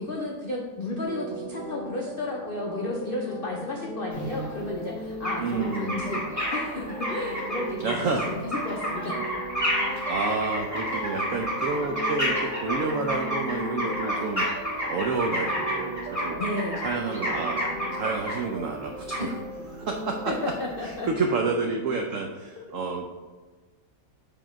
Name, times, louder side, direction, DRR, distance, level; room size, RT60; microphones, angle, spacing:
voice 1, 0.0-9.1 9.9-10.0 16.4-16.8 19.2-19.3 20.3-21.3, left 2 dB, 75° left, -2 dB, 0.5 m, -33 dB
sound 1, 1.0-20.5, right 1 dB, 35° right, 0.8 m, -38 dB
sound 2, 4.1-4.7 5.2-5.3 5.6-18.3 19.1-19.2, equal, 10° right, 1.9 m, -30 dB
voice 2, 5.4-6.2 7.8-8.2 10.1-14.5 14.9-16.4 16.8-17.6 17.9-19.3 19.8-20.3 20.8-23.1, right 4 dB, 90° right, 3 dB, 0.7 m, -29 dB
5.0 x 3.7 x 5.6 m, 1.3 s
omnidirectional pair, 2.0 m